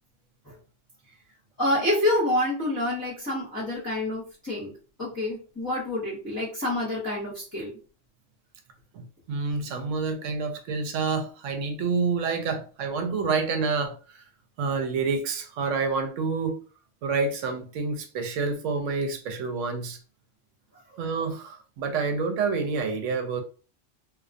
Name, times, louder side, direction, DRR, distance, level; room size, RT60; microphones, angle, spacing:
voice 1, 1.6-4.7 5.0-7.7, left 1 dB, 20° left, 0.8 m, -27 dB
voice 2, 8.9-14.2 14.6-16.6 17.0-20.0 21.0-23.4, right 4 dB, 80° right, 0.9 m, -28 dB
2.2 x 2.2 x 2.5 m
omnidirectional pair, 1.3 m